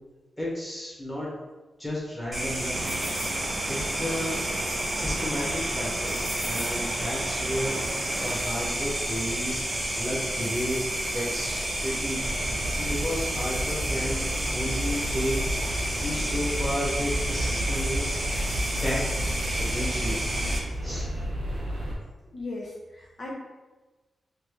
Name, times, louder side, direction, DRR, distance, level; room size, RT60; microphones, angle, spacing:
voice 1, 0.4-1.3 1.8-2.7 3.7-4.4 4.9-10.8 11.1-12.2 12.8-14.2 14.5-15.4 15.8-18.3 18.5-19.0 19.6-20.2 20.8-21.1, equal, 10° left, -6 dB, 1.3 m, -32 dB
sound 1, 2.3-20.6, right 1 dB, 20° right, 1.0 m, -30 dB
sound 2, 2.7-8.5, right 2 dB, 55° right, 0.3 m, -37 dB
sound 3, 12.2-22.0, equal, 80° right, 0.7 m, -32 dB
voice 2, 22.3-23.3, left 2 dB, 55° left, -4 dB, 0.6 m, -37 dB
3.2 x 2.5 x 3.1 m, 1.2 s
cardioid pair, 90°, 0 cm